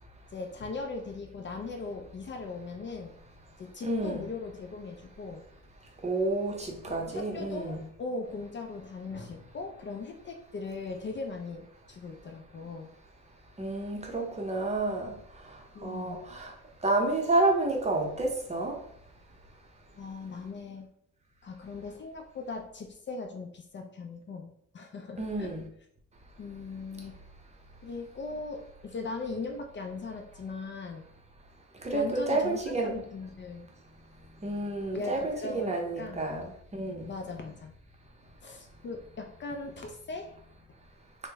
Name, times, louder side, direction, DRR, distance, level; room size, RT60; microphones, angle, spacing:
voice 1, 0.3-3.1 3.6-5.4 6.9-12.9 15.7-16.2 20.0-20.9 21.4-25.5 26.4-27.2 27.8-31.0 31.9-33.7 34.9-36.3 37.1-37.7 38.4-40.3, left 3 dB, 40° left, 3 dB, 0.5 m, -39 dB
voice 2, 3.8-4.3 6.0-7.8 13.6-15.2 15.8-16.5 16.8-18.8 25.2-25.6 31.8-33.0 34.4-37.1, right 2 dB, 20° right, 0 dB, 0.7 m, -30 dB
2.9 x 2.1 x 3.4 m, 0.67 s
cardioid pair, 90°, 30 cm